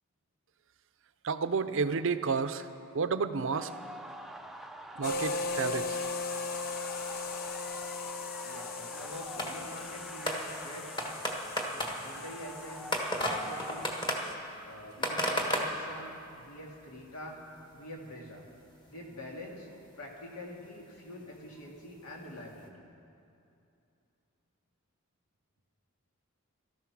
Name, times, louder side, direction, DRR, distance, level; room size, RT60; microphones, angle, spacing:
voice 1, 1.2-2.7 2.9-3.7 5.0-6.0, right 5 dB, 60° right, 11 dB, 0.6 m, -31 dB
sound 1, 3.5-14.0, equal, ahead, 0.5 m, -46 dB
sound 2, 5.0-14.3, left 3 dB, 45° left, 0.7 m, -38 dB
voice 2, 8.4-10.9 11.7-12.9 13.3-13.9 14.6-17.4 17.7-18.4 18.9-19.7 20.0-22.9, left 1 dB, 80° left, 0 dB, 2.3 m, -45 dB
sound 3, 9.1-9.8 10.3-16.4 17.2-17.3 17.6-17.7 18.1-18.2 19.6-19.7 20.1-20.2 21.7-21.8 22.6-22.7, equal, 20° left, 1.4 m, -34 dB
15.5 x 13.5 x 6.1 m, 2.7 s
head